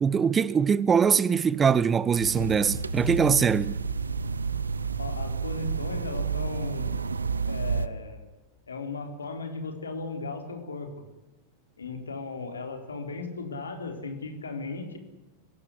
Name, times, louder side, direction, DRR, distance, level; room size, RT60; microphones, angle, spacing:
voice 1, 0.0-3.8, right 6 dB, 20° right, 0.8 m, -22 dB
sound 1, 2.2-7.9, right 4 dB, 75° right, 1.0 m, -30 dB
voice 2, 5.0-7.0 7.5-8.3 8.7-11.0 11.8-15.0, left 3 dB, 70° left, 4.0 m, -36 dB
24.0 x 17.0 x 9.8 m
figure-of-eight pair, 90°, 0 cm